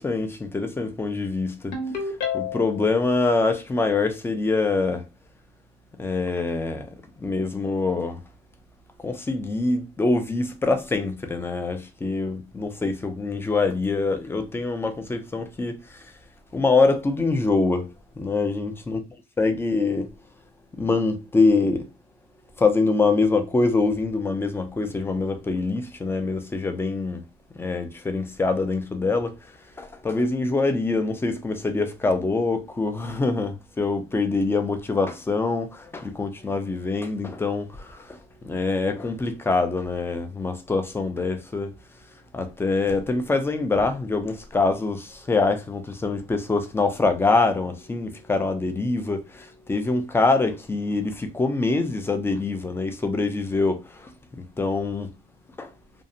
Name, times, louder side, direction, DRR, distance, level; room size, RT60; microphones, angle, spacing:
voice 1, 0.0-5.1 6.0-6.9 7.2-8.2 9.0-16.1 16.5-17.9 18.2-19.0 19.4-20.1 20.8-21.9 22.6-27.2 27.6-29.4 29.8-41.7 42.3-54.1 54.6-55.1 55.6-55.7, left 3 dB, 15° left, 0.4 m, -24 dB
Ringtone, 1.7-2.9, left 5 dB, 75° left, 0.9 m, -29 dB
2.5 x 2.0 x 2.6 m
cardioid pair, 110°, 17 cm